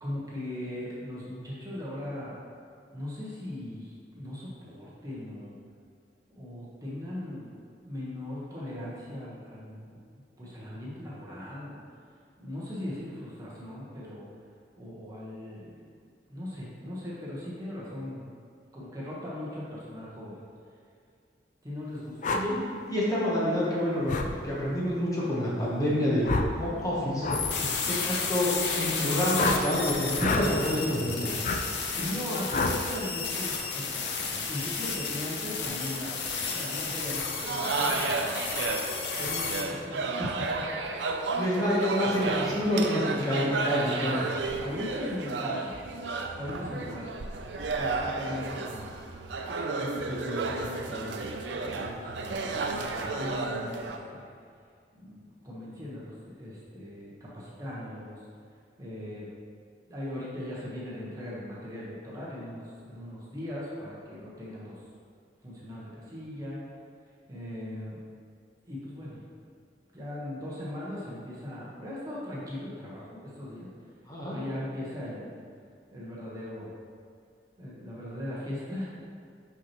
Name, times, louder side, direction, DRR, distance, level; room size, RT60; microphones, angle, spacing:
voice 1, 0.0-2.4 2.9-5.6 6.3-10.0 10.4-11.8 12.4-14.3 14.8-15.9 16.3-18.2 18.7-20.4 21.6-22.4 27.5-28.0 31.9-38.3 39.2-41.0 41.5-41.6 44.6-45.7 46.3-47.1 47.7-48.9 49.5-49.7 50.0-51.3 51.6-52.6 52.9-54.2 54.9-58.2 58.8-59.3 59.9-64.8 65.4-66.6 67.3-68.0 68.7-69.2 69.9-73.7 74.3-75.4 75.9-76.7 77.6-78.8, left 1 dB, 20° right, -7 dB, 1.2 m, -39 dB
sound 1, 22.2-22.4 24.1-24.3 26.2-26.5 27.2-27.4 29.3-29.6 30.2-30.5 31.4-31.6 32.5-32.8, left 3 dB, 45° left, 0.4 m, -27 dB
voice 2, 22.3-27.3 28.0-31.3 41.4-44.2 74.1-74.4, equal, 20° left, -7 dB, 1.1 m, -28 dB
sound 2, 27.3-39.6, left 5 dB, 75° left, 0.7 m, -32 dB
sound 3, 37.4-54.0, right 3 dB, 85° right, 0.5 m, -32 dB
5.9 x 5.8 x 3.0 m, 2.3 s
head